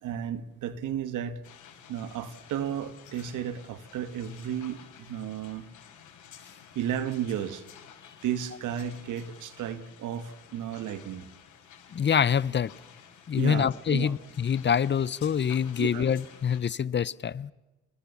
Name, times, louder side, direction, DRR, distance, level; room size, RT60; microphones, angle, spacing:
voice 1, 0.0-1.4 1.9-5.7 6.8-7.6 8.2-11.3 13.4-14.2 15.8-16.1, right 9 dB, 85° right, 1.9 m, -33 dB
sound 1, 1.4-16.6, left 8 dB, 75° left, 5.3 m, -52 dB
voice 2, 11.9-12.7 13.3-17.5, left 8 dB, 35° left, 0.8 m, -26 dB
30.0 x 20.0 x 7.2 m
cardioid pair, 90°, 30 cm